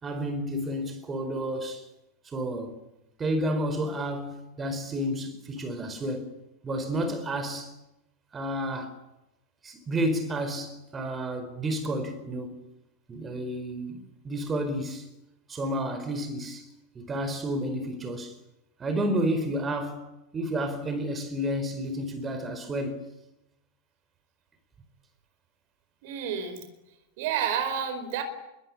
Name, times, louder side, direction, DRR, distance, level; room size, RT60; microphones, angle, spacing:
voice 1, 0.0-1.8 2.2-2.8 3.2-6.3 6.6-7.7 8.3-8.9 9.6-12.6 13.1-15.1 15.5-16.7 16.9-18.3 18.8-23.1, right 1 dB, 20° right, 4.5 m, -31 dB
voice 2, 26.0-26.7 27.2-28.2, right 8 dB, 50° right, 4.8 m, -30 dB
26.5 x 22.5 x 10.0 m
figure-of-eight pair, 90°, 0 cm